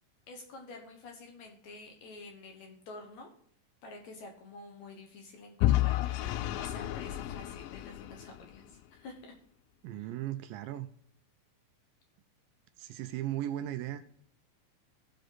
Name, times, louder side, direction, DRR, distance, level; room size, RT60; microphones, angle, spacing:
voice 1, 0.3-3.3 3.8-9.1 9.9-10.1, left 3 dB, 60° left, 2.1 m, -49 dB
Vehicle / Engine, 5.6-8.6, left 14 dB, 80° left, 2.1 m, -31 dB
voice 2, 9.8-10.9 12.8-14.0, right 13 dB, 80° right, 2.1 m, -36 dB
14.5 x 5.0 x 3.9 m
omnidirectional pair, 4.2 m